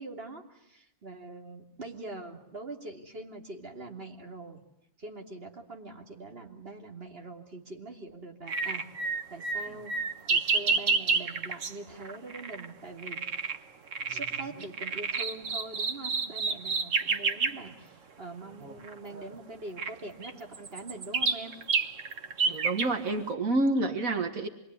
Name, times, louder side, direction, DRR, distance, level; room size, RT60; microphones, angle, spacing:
voice 1, 0.0-4.6 5.0-8.9 9.3-13.2 14.1-21.6, right 2 dB, 45° right, 2 dB, 3.2 m, -43 dB
sound 1, 8.5-11.7 12.0-12.7 13.0-13.6 13.9-17.6 18.8-18.9 19.8-19.9 20.2-22.9, right 4 dB, 65° right, 1.7 m, -29 dB
voice 2, 22.5-24.5, right 2 dB, 85° right, 6 dB, 2.1 m, -29 dB
27.0 x 22.0 x 9.8 m, 0.83 s
omnidirectional pair, 1.4 m